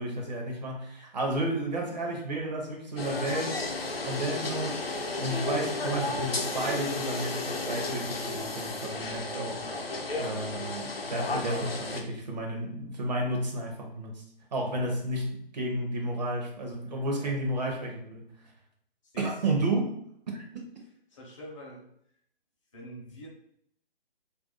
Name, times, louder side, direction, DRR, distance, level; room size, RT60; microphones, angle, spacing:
voice 1, 0.0-3.6 4.1-4.8 5.2-9.8 10.2-14.1 14.5-18.3 19.2-19.9 20.3-20.6, right 1 dB, 45° right, 0 dB, 0.7 m, -32 dB
sound 1, 3.0-12.0, left 3 dB, 80° left, 0.7 m, -33 dB
voice 2, 9.6-9.9 17.2-17.6 19.1-19.4 21.1-21.9 22.7-23.3, equal, 35° left, -2 dB, 0.8 m, -46 dB
2.6 x 2.3 x 3.6 m, 0.70 s
figure-of-eight pair, 140°, 29 cm